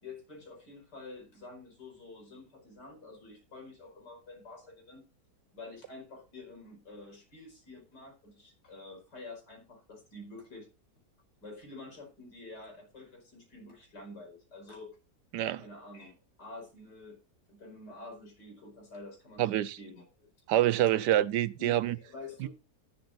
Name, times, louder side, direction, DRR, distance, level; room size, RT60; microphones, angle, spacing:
voice 1, 0.0-5.0 5.5-10.7 11.4-14.9 15.6-17.2 17.5-20.3 21.6-22.5, left 2 dB, 80° left, 5.5 m, -48 dB
voice 2, 19.4-19.8 20.5-22.0 22.4-22.5, right 13 dB, 90° right, 1.3 m, -26 dB
13.5 x 11.5 x 2.5 m
omnidirectional pair, 1.8 m